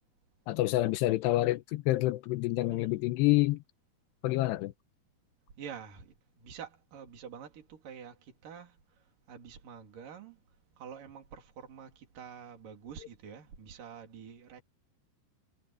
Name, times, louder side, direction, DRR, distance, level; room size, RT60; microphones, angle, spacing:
voice 1, 0.5-3.6 4.2-4.7, left 17 dB, 85° left, 2.8 m, -27 dB
voice 2, 5.6-10.4 10.8-14.6, right 7 dB, 55° right, 4.8 m, -47 dB
omnidirectional pair, 5.0 m